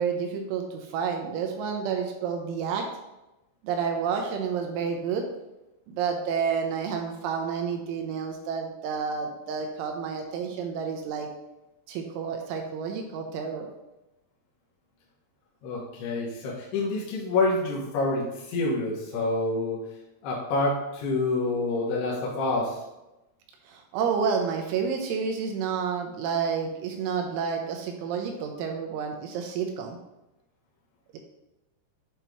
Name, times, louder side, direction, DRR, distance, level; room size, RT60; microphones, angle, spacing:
voice 1, 0.0-2.9 3.6-5.2 5.9-11.3 11.9-13.7 23.7-30.0, right 6 dB, 85° right, 3 dB, 2.9 m, -30 dB
voice 2, 15.6-19.8 20.2-22.8, left 2 dB, 75° left, -5 dB, 2.5 m, -27 dB
8.0 x 3.0 x 4.7 m, 0.97 s
omnidirectional pair, 5.9 m